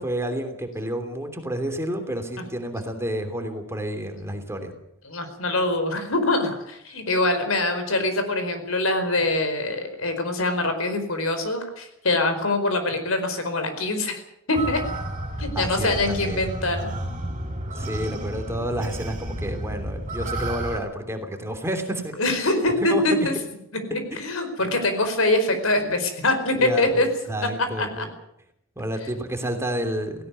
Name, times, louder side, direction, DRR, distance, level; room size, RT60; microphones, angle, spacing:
voice 1, 0.0-4.7 15.5-16.5 17.7-22.2 22.4-22.5 22.8-23.0 25.8-26.0 26.5-28.1 28.8-30.3, right 1 dB, 15° right, 6 dB, 3.0 m, -30 dB
voice 2, 5.0-14.2 14.5-14.8 15.4-16.9 22.2-23.3 23.9-27.1 27.8-28.1, left 2 dB, 75° left, 8 dB, 4.7 m, -24 dB
sound 1, 14.5-20.8, right 1 dB, 35° right, 5.8 m, -31 dB
18.0 x 17.0 x 9.6 m, 0.78 s
head